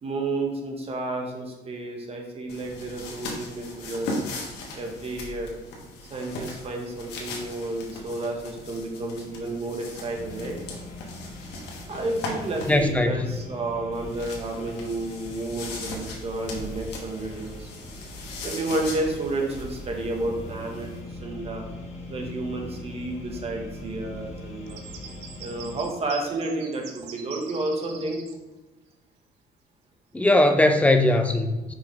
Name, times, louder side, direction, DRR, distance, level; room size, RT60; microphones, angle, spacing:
voice 1, 0.0-4.2 4.7-5.5 6.1-10.6 11.9-17.7 18.4-20.9 21.2-21.6 22.1-24.8 25.4-28.2, right 2 dB, 35° right, 1 dB, 1.4 m, -31 dB
sound 1, 2.5-12.9 13.9-21.0, left 2 dB, 90° left, 1.4 m, -39 dB
sound 2, 10.1-25.8, left 1 dB, 40° left, 1.9 m, -41 dB
voice 2, 12.7-13.3 30.1-31.7, left 1 dB, 10° left, 6 dB, 0.6 m, -20 dB
sound 3, 24.7-28.3, right 8 dB, 85° right, 0.8 m, -43 dB
5.7 x 5.4 x 3.4 m, 1.1 s
cardioid pair, 110°, 17 cm